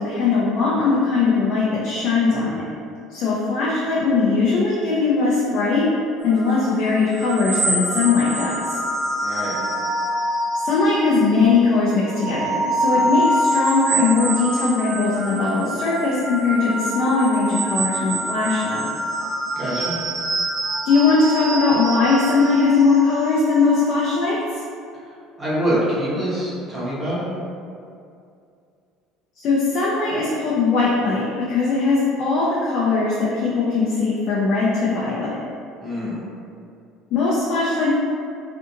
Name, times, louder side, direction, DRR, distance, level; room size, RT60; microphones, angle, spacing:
voice 1, 0.0-2.6 3.1-5.9 6.2-8.8 10.6-18.9 20.8-24.6 29.4-35.3 37.1-37.9, left 4 dB, 50° left, -7 dB, 0.5 m, -20 dB
sound 1, 6.3-11.5 11.9-24.2, right 1 dB, 30° right, 0.4 m, -25 dB
voice 2, 9.2-9.5 19.5-19.9 25.4-27.2 35.8-36.2, equal, 15° right, -9 dB, 0.9 m, -25 dB
2.6 x 2.5 x 2.7 m, 2.4 s
cardioid pair, 145°, 0 cm